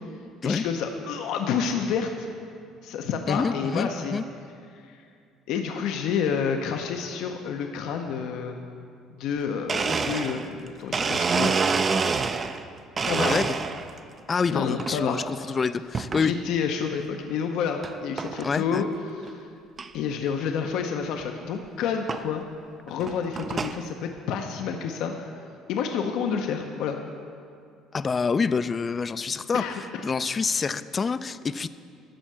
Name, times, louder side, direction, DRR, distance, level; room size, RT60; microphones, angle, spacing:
voice 1, 0.4-2.3 2.8-4.2 4.7-5.0 5.5-8.6 9.2-11.6 12.3-12.4 13.1-13.4 14.5-15.6 16.2-19.4 19.9-22.4 22.9-25.3 25.7-27.0 29.5-30.0, left 6 dB, 75° left, 4 dB, 0.7 m, -29 dB
voice 2, 3.3-4.2 13.2-13.5 14.3-16.3 18.4-18.8 27.9-29.6 30.0-31.7, left 5 dB, 30° left, 14 dB, 0.3 m, -27 dB
Domestic sounds home sounds, 9.3-9.4 9.7-12.6 13.0-14.0 14.5-15.0 15.9-16.3 16.9-17.0 17.8-17.9 18.2-18.5 18.9-19.0 19.2-19.3 19.8-19.9 21.2-21.3 22.1-22.2 22.9-23.8, right 5 dB, 30° right, 0.4 m, -27 dB
13.0 x 4.5 x 7.5 m, 2.3 s
cardioid pair, 105°, 0 cm